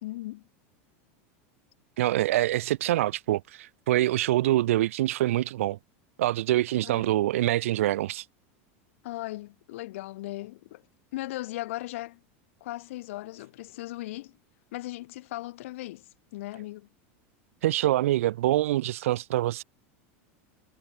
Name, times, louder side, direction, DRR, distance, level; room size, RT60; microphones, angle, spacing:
voice 1, 0.0-0.4 6.8-7.1 9.0-10.8 11.1-12.2 12.6-14.4 14.7-16.1 16.3-16.9, left 17 dB, 75° left, 3.5 m, -37 dB
voice 2, 2.0-5.8 6.2-8.2 17.6-19.6, right 14 dB, 85° right, 2.5 m, -25 dB
supercardioid pair, 145°, 7 cm